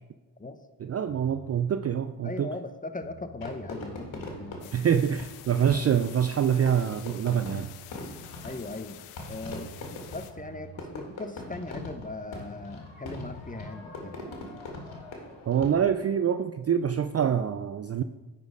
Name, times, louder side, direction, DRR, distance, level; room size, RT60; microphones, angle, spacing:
voice 1, 0.8-2.5 4.7-7.7 15.5-18.0, right 8 dB, 35° right, 9 dB, 0.4 m, -25 dB
sound 1, 1.1-1.7 2.7-2.8 3.0-4.7 6.9-7.0 7.2-8.4 9.2-10.9, right 6 dB, 90° right, 0.9 m, -49 dB
voice 2, 2.2-4.7 8.4-9.0 9.3-9.7 10.1-14.2, left 2 dB, 15° left, 9 dB, 0.7 m, -39 dB
Fireworks, 3.4-16.1, left 2 dB, 65° left, 1.8 m, -42 dB
sound 2, 4.6-10.3, left 12 dB, 85° left, 0.6 m, -48 dB
9.4 x 4.4 x 4.8 m, 1.2 s
supercardioid pair, 45°, 49 cm